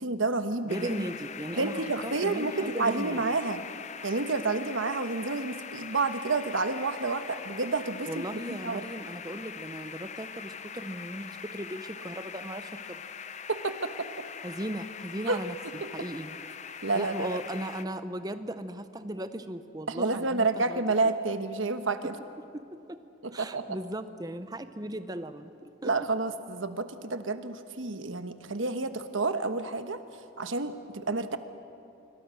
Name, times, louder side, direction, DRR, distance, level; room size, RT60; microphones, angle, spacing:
voice 1, 0.0-1.0 1.6-3.6 4.0-8.8 13.5-14.1 15.3-15.4 16.8-17.4 19.9-22.1 23.2-23.6 25.8-30.0 30.4-31.4, right 3 dB, 75° right, 9 dB, 1.2 m, -29 dB
voice 2, 0.6-3.2 8.1-13.0 14.4-16.4 16.9-20.8 22.5-23.0 23.3-26.1, right 1 dB, 20° right, 11 dB, 0.8 m, -37 dB
sound 1, 0.7-17.8, left 7 dB, 35° left, 0.6 m, -42 dB
27.0 x 23.0 x 6.4 m, 2.6 s
head